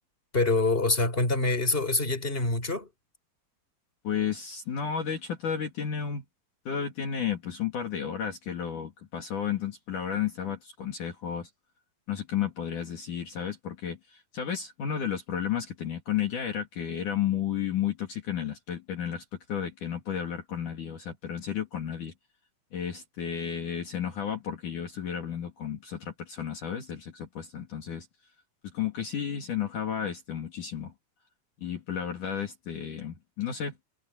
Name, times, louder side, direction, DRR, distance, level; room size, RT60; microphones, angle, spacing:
voice 1, 0.3-2.9, left 2 dB, 15° left, 5.3 m, -25 dB
voice 2, 4.0-6.2 6.7-11.5 12.1-22.1 22.7-28.1 28.7-30.9 31.6-33.8, left 8 dB, 55° left, 4.0 m, -32 dB
omnidirectional pair, 4.4 m